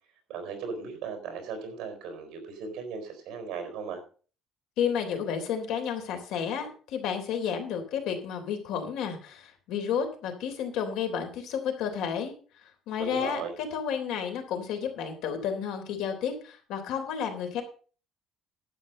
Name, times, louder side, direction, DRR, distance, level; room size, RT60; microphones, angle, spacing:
voice 1, 0.3-4.0 13.0-13.5, right 5 dB, 60° right, 7 dB, 4.4 m, -37 dB
voice 2, 4.8-12.3 12.9-17.6, left 7 dB, 70° left, 5 dB, 3.4 m, -31 dB
11.5 x 8.8 x 5.4 m, 0.39 s
cardioid pair, 175°, 0 cm